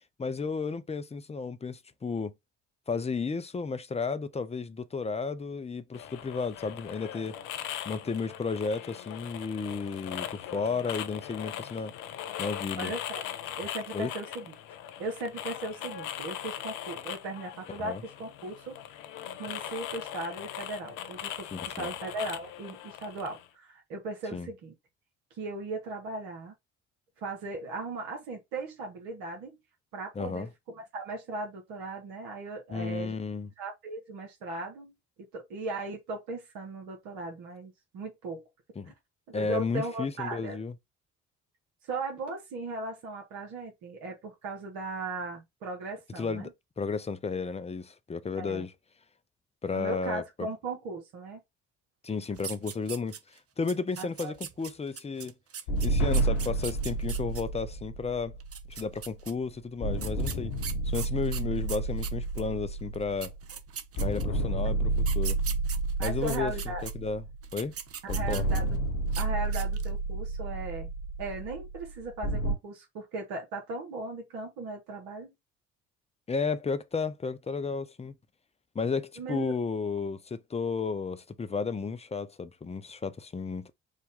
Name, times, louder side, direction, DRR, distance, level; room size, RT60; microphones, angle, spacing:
voice 1, 0.2-2.3 2.9-7.4 7.8-11.9 12.4-12.9 13.9-14.1 17.8-18.0 21.5-21.9 24.3-24.5 30.1-30.5 32.7-33.5 38.8-38.9 39.3-40.7 46.2-48.7 49.6-50.5 52.0-55.3 55.8-58.4 58.7-60.5 60.9-63.3 64.0-65.4 66.0-66.5 66.8-67.2 67.5-67.7 68.1-68.5 76.3-78.1 78.7-83.7, left 4 dB, 15° left, 0.7 m, -33 dB
sound 1, 5.9-23.5, left 10 dB, 60° left, 0.7 m, -40 dB
voice 2, 12.8-13.2 13.6-14.6 15.0-18.8 19.4-21.5 21.8-24.7 25.4-26.5 27.2-29.6 29.9-33.2 33.6-34.9 35.3-38.4 38.9-39.0 39.3-40.6 41.8-46.5 48.4-48.7 49.7-51.4 54.0-54.3 66.0-66.8 68.0-68.7 69.2-70.9 71.2-75.3 79.2-79.5, right 2 dB, 70° right, 1.7 m, -37 dB
sound 2, 52.4-53.4 53.7-57.4 58.4-59.3 60.0-62.5 62.9-63.0 63.2-64.4 65.0-66.9 67.4-68.8 69.1-69.3 69.5-70.0, right 8 dB, 40° right, 0.9 m, -40 dB
sound 3, 55.7-59.2 59.8-63.6 64.0-67.6 68.1-72.5, right 2 dB, 75° left, 1.1 m, -30 dB
4.9 x 2.5 x 3.7 m
figure-of-eight pair, 50°, 37 cm